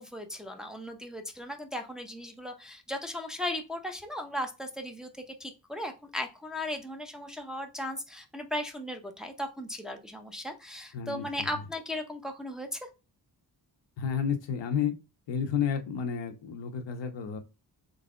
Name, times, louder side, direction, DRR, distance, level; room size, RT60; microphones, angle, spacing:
voice 1, 0.0-12.8, left 1 dB, ahead, 0.7 m, -37 dB
voice 2, 10.9-11.3 14.0-14.9 15.3-17.4, left 7 dB, 90° left, 0.9 m, -31 dB
4.0 x 3.3 x 3.7 m
cardioid pair, 100°, 42 cm